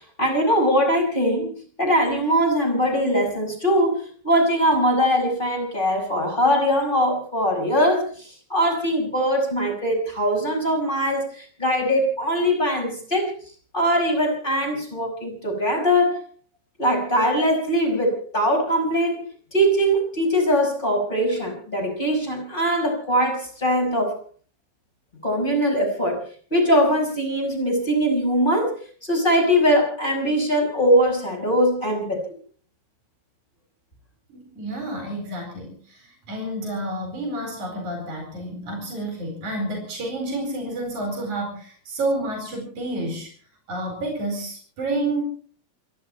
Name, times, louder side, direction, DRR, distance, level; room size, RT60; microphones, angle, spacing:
voice 1, 0.2-13.3 13.7-16.2 16.8-19.2 19.5-24.2 25.2-26.2 26.5-28.7 29.0-32.3, equal, 15° left, 3 dB, 5.9 m, -21 dB
voice 2, 34.3-43.3 43.7-45.2, right 1 dB, 90° right, 3 dB, 6.1 m, -29 dB
28.5 x 11.5 x 4.4 m, 0.43 s
omnidirectional pair, 3.3 m